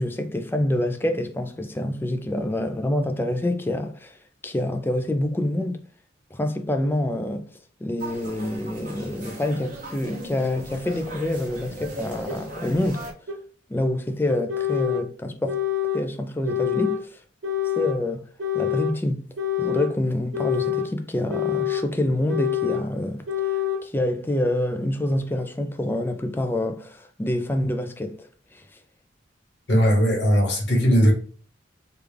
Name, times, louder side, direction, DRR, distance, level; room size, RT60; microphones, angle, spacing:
voice 1, 0.0-4.2 4.4-5.8 6.3-7.4 7.8-13.0 13.7-15.6 15.9-17.2 17.8-18.2 18.5-19.3 19.6-23.5 23.8-28.2 28.5-28.6, left 1 dB, 10° left, 0.3 m, -26 dB
sound 1, 8.0-13.1, right 1 dB, 45° right, 0.9 m, -37 dB
sound 2, 12.3-12.4 13.3-13.4 14.3-15.0 15.5-16.0 16.5-17.0 17.4-18.0 18.4-19.0 19.4-19.9 20.3-20.9 21.3-21.9 22.3-22.8 23.3-23.8, left 11 dB, 80° right, 0.7 m, -26 dB
voice 2, 29.7-31.1, equal, 65° left, 1.1 m, -18 dB
3.4 x 2.4 x 3.3 m
head